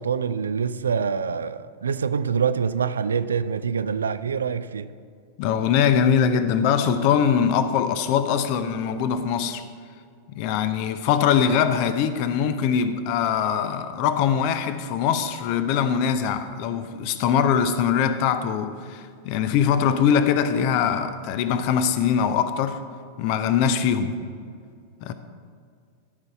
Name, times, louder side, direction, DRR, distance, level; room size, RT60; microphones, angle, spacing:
voice 1, 0.0-4.9 24.4-24.5, right 6 dB, 70° right, 0.3 m, -25 dB
voice 2, 5.4-9.6 10.3-22.8 23.2-24.2 25.0-25.1, left 7 dB, 45° left, 0.6 m, -22 dB
13.0 x 5.4 x 4.6 m
figure-of-eight pair, 90°, 0 cm